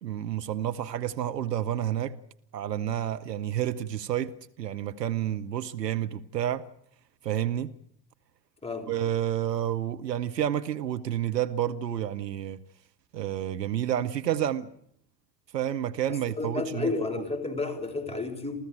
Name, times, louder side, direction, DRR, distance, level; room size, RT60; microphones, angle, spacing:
voice 1, 0.0-2.1 2.5-6.7 7.2-7.7 8.9-12.6 13.1-14.7 15.5-16.9, right 11 dB, 75° right, 0.9 m, -30 dB
voice 2, 8.6-9.0 16.1-18.6, left 3 dB, 10° left, 3.7 m, -32 dB
28.0 x 15.0 x 8.9 m
figure-of-eight pair, 65°, 49 cm